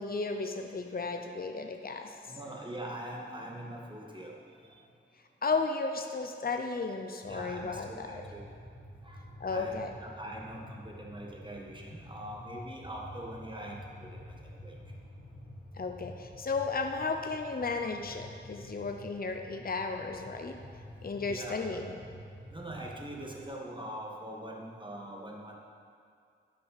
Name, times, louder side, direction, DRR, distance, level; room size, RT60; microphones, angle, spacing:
voice 1, 0.0-2.1 5.4-8.2 9.4-9.9 15.8-20.6 21.0-22.0, left 4 dB, 45° left, 5 dB, 0.7 m, -34 dB
voice 2, 2.3-4.3 4.7-4.8 7.2-8.4 9.0-9.2 9.5-14.2 14.6-14.8 18.2-18.3 19.0-19.1 20.6-20.8 21.3-21.8 22.5-25.6, right 1 dB, 25° right, -1 dB, 1.6 m, -43 dB
sound 1, 7.2-23.5, left 1 dB, 80° left, 1.7 m, -49 dB
10.5 x 5.6 x 5.8 m, 2.3 s
wide cardioid pair, 55°, 21 cm